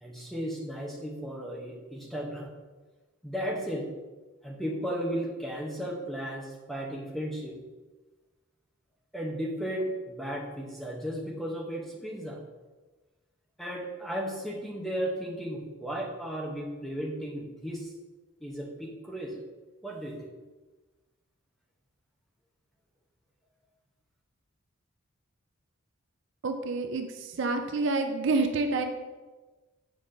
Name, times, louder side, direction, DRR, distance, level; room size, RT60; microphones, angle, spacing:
voice 1, 0.0-2.5 3.2-3.9 4.4-7.6 9.1-12.4 13.6-17.9 18.4-19.4 19.8-20.3, equal, ahead, -2 dB, 0.8 m, -35 dB
voice 2, 26.4-27.1 27.4-28.8, right 3 dB, 55° right, 6 dB, 0.4 m, -27 dB
7.5 x 5.0 x 2.6 m, 1.2 s
head